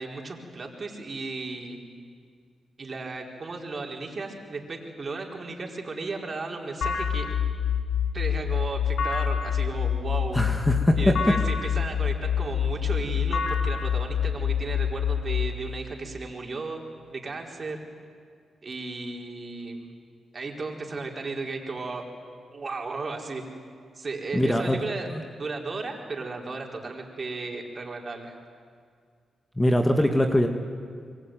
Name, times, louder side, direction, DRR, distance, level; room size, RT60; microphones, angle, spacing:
voice 1, 0.0-1.8 2.8-7.3 8.1-10.4 11.0-16.8 17.1-17.8 18.6-19.9 20.3-22.0 22.5-23.4 23.9-25.1 25.4-28.4, right 3 dB, 45° right, 1 dB, 4.8 m, -35 dB
sound 1, 6.8-15.5, left 8 dB, 75° left, 2.1 m, -26 dB
voice 2, 10.3-11.1 24.3-25.2 29.6-30.5, left 1 dB, 15° left, 4 dB, 2.2 m, -22 dB
26.5 x 22.5 x 9.4 m, 2.1 s
supercardioid pair, 55°, 0 cm